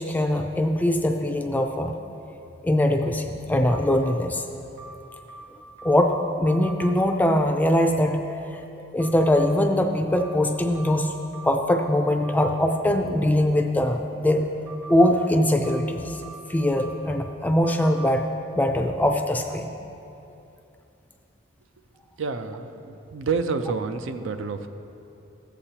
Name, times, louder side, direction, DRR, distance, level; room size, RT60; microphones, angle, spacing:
voice 1, 0.0-1.9 2.6-4.5 5.8-8.2 8.5-8.6 8.9-11.1 11.4-14.5 14.9-16.2 16.5-18.3 18.6-19.7, left 1 dB, 10° left, 4 dB, 0.4 m, -22 dB
sound 1, 3.7-4.2 4.8-6.1 6.5-6.9 9.0-9.5 10.1-11.8 12.2-12.7 14.7-15.1 15.6-17.2 17.6-18.1, right 3 dB, 55° right, 1.4 m, -43 dB
voice 2, 22.2-24.7, right 4 dB, 80° right, 8 dB, 0.5 m, -29 dB
14.5 x 8.2 x 2.9 m, 2.8 s
head